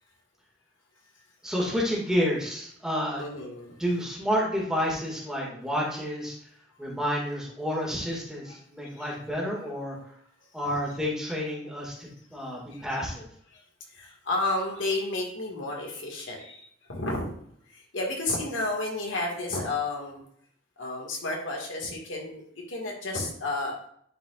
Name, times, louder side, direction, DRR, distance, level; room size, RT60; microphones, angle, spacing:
voice 1, 1.4-3.2 3.8-6.4 6.8-10.1 10.5-13.3, equal, 5° right, -4 dB, 2.0 m, -30 dB
voice 2, 3.2-3.8 9.0-9.1 12.7-12.9 13.5-13.6 13.9-17.3 17.7-20.2 20.8-22.4 22.7-23.8, left 2 dB, 85° left, -1 dB, 1.8 m, -31 dB
10.5 x 4.8 x 2.4 m, 0.65 s
head